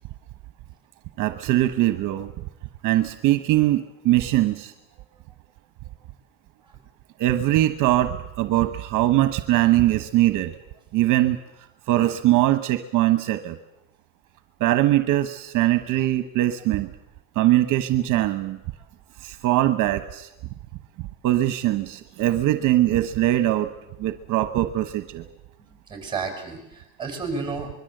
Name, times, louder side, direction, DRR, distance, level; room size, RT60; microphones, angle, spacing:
voice 1, 1.2-2.4 2.8-4.7 7.2-10.5 10.9-13.6 14.6-16.9 17.3-18.6 19.2-20.3 21.0-23.7 24.0-25.2, right 14 dB, 60° right, 10 dB, 1.2 m, -22 dB
voice 2, 25.6-27.7, right 4 dB, 10° right, 4 dB, 6.4 m, -32 dB
25.0 x 22.0 x 7.9 m, 0.89 s
cardioid pair, 145°, 36 cm